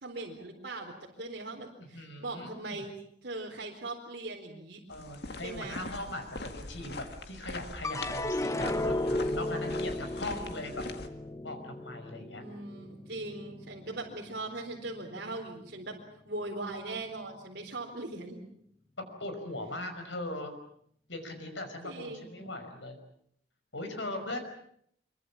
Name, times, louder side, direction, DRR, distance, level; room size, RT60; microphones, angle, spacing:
voice 1, 0.0-2.9 3.2-4.8 5.4-5.8 12.4-16.0 16.3-18.4 21.8-22.5, right 2 dB, 55° right, -2 dB, 4.1 m, -40 dB
voice 2, 1.9-2.8 4.9-10.9 11.4-12.4 19.0-20.5 21.1-23.0 23.7-24.4, left 1 dB, 75° left, 6 dB, 5.6 m, -40 dB
sound 1, 4.9-11.1, left 2 dB, 60° left, 2.0 m, -42 dB
sound 2, 7.8-14.3 14.7-15.4, left 1 dB, 15° left, 1.0 m, -35 dB
26.0 x 24.0 x 7.3 m, 0.69 s
head